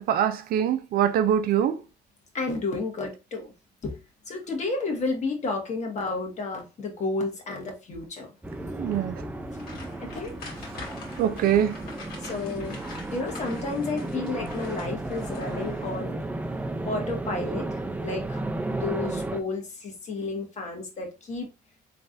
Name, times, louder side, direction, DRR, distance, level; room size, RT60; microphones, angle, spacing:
voice 1, 0.0-1.8 8.7-9.2 11.2-11.8, right 9 dB, 60° right, 0.5 m, -23 dB
voice 2, 2.3-3.5 3.8-4.0 4.3-8.3 10.0-10.3 12.2-12.8 13.1-16.2 16.8-18.4 18.7-21.5, left 3 dB, 45° left, 1.5 m, -31 dB
sound 1, 8.4-19.4, right 2 dB, 10° right, 0.5 m, -33 dB
sound 2, 9.5-16.2 16.5-16.7 17.2-17.3, left 3 dB, 60° left, 1.8 m, -44 dB
3.9 x 3.3 x 2.6 m
cardioid pair, 110°, 17 cm